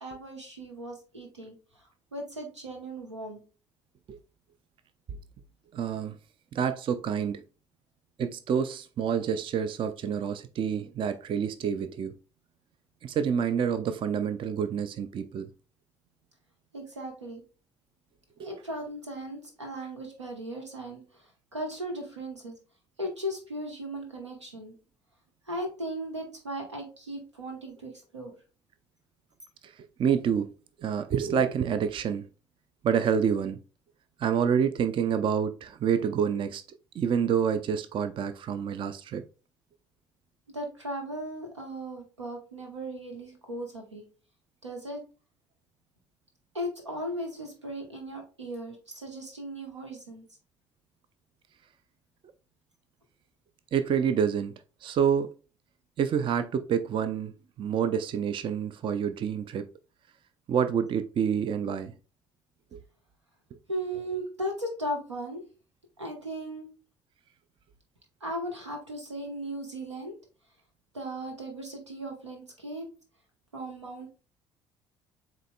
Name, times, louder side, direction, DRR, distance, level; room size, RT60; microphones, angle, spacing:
voice 1, 0.0-3.4 16.7-17.4 18.4-22.6 23.0-24.8 25.5-28.3 40.5-44.0 44.6-45.0 46.5-50.2 63.7-65.4 66.0-66.7 68.2-70.1 70.9-72.9 73.5-74.1, right 1 dB, 85° right, 1.0 m, -37 dB
voice 2, 5.7-6.2 6.5-7.4 8.2-12.1 13.0-15.5 18.4-18.5 29.6-30.5 30.8-32.2 32.8-33.6 34.2-36.6 36.9-39.2 53.7-54.5 54.8-55.3 56.0-59.7 60.5-61.9 62.7-62.8, right 7 dB, 35° right, 0.4 m, -28 dB
7.5 x 3.0 x 2.2 m
figure-of-eight pair, 50°, 15 cm